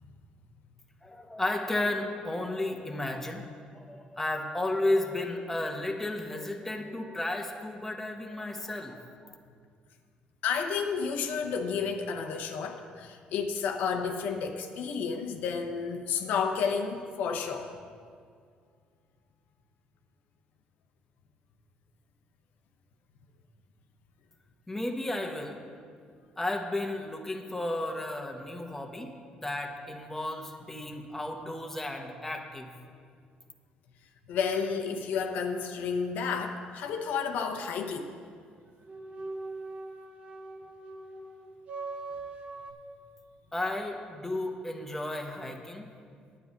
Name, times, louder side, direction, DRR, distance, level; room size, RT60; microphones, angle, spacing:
voice 1, 1.0-9.0 9.2-9.3 24.7-25.6 26.4-32.7 43.5-45.9, left 1 dB, 10° left, 3 dB, 1.0 m, -33 dB
voice 2, 10.4-17.7 34.3-38.2, left 6 dB, 80° left, 5 dB, 0.8 m, -31 dB
sound 1, 38.8-42.7, right 3 dB, 45° right, 1.2 m, -41 dB
9.3 x 8.6 x 5.2 m, 2.2 s
cardioid pair, 100°, 3 cm